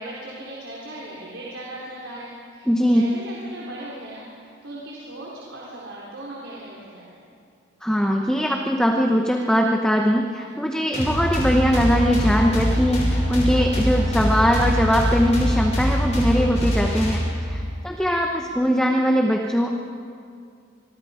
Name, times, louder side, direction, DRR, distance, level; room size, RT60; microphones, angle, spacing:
voice 1, 0.0-7.3, right 1 dB, 75° right, -5 dB, 3.9 m, -38 dB
voice 2, 2.7-3.0 7.8-19.7, equal, 5° left, 1 dB, 1.0 m, -21 dB
sound 1, 10.9-17.6, equal, 35° left, 6.2 m, -23 dB
25.5 x 22.5 x 5.1 m, 2.3 s
head